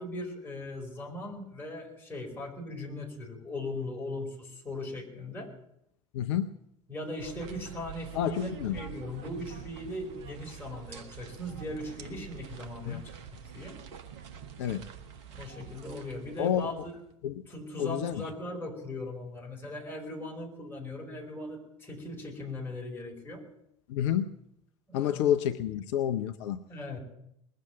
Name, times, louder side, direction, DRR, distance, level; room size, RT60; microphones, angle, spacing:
voice 1, 0.0-5.5 6.9-13.1 13.5-13.8 15.3-16.9 17.5-23.4 24.9-25.3 26.7-27.0, left 1 dB, 15° left, -1 dB, 5.1 m, -39 dB
voice 2, 6.1-6.5 8.1-8.8 12.9-13.0 14.6-14.8 16.4-16.7 17.2-17.3 17.8-18.1 23.9-24.3 24.9-26.6, left 10 dB, 60° left, 9 dB, 0.6 m, -29 dB
sound 1, 7.2-17.1, right 8 dB, 60° right, 1.3 m, -46 dB
20.5 x 7.7 x 9.0 m, 0.76 s
figure-of-eight pair, 70°, 16 cm